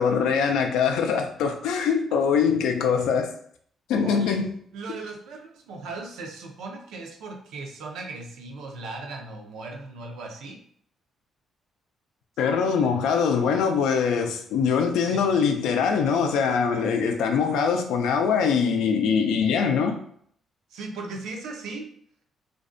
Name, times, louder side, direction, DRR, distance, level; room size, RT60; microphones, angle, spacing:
voice 1, 0.0-3.3 3.9-4.5 12.4-20.0, left 6 dB, 90° left, 0.3 m, -23 dB
voice 2, 4.0-4.4 4.7-10.6 12.8-12.9 15.1-15.3 20.7-21.9, right 3 dB, 85° right, 0.5 m, -38 dB
2.5 x 2.1 x 2.5 m
cardioid pair, 90°, 0 cm